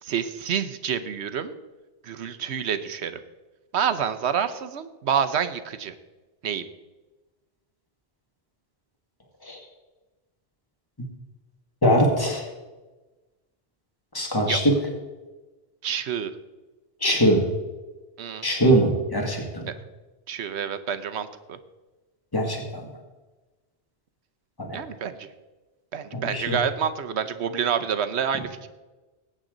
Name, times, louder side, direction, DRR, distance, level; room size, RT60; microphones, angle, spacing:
voice 1, 0.0-1.6 2.0-3.2 3.7-5.9 6.4-6.6 14.5-14.6 15.8-16.3 18.2-18.5 20.3-21.6 24.7-25.3 25.9-28.7, right 8 dB, 80° right, 11 dB, 1.1 m, -28 dB
voice 2, 11.8-12.5 14.1-14.7 17.0-17.4 18.4-19.7 22.3-22.9 24.6-24.8 26.1-26.6, equal, 20° left, 1 dB, 2.1 m, -22 dB
18.5 x 8.8 x 3.9 m, 1.2 s
omnidirectional pair, 1.1 m